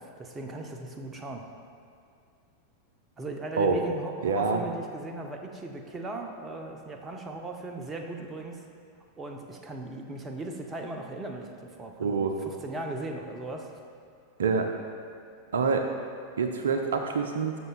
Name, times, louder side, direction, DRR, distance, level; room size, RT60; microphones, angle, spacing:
voice 1, 0.0-1.4 3.2-8.6 9.2-13.8, right 2 dB, 20° right, 3 dB, 0.7 m, -38 dB
voice 2, 4.2-4.6 12.0-12.4 14.4-14.7 15.5-15.9 16.4-17.6, right 5 dB, 65° right, 5 dB, 0.4 m, -26 dB
13.0 x 6.2 x 2.4 m, 2.5 s
figure-of-eight pair, 90°, 0 cm